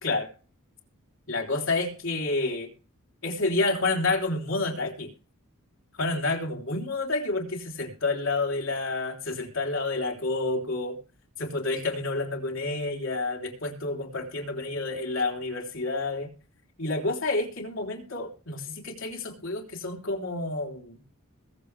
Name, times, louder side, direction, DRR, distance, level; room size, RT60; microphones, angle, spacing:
voice 1, 1.3-2.7 3.2-5.1 6.0-11.0 11.4-16.3 16.8-21.0, left 2 dB, 60° left, 1 dB, 3.6 m, -29 dB
21.5 x 7.6 x 3.4 m, 0.36 s
head